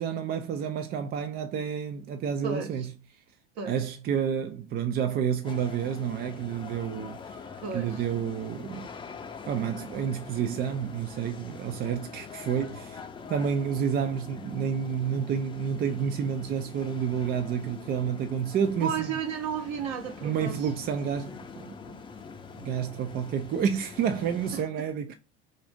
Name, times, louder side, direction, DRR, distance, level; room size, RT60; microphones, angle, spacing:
voice 1, 0.0-2.9 3.7-7.2 7.7-8.9 9.5-13.0 13.3-19.1 20.2-22.0 22.5-25.1, right 7 dB, 35° right, 0.4 m, -30 dB
voice 2, 2.4-2.9 3.6-3.8 7.6-8.0 18.8-20.7 24.5-24.9, right 7 dB, 55° right, 1.1 m, -33 dB
sound 1, 5.4-24.6, left 5 dB, 15° left, 0.6 m, -44 dB
3.7 x 2.5 x 3.5 m
hypercardioid pair, 95°, 29 cm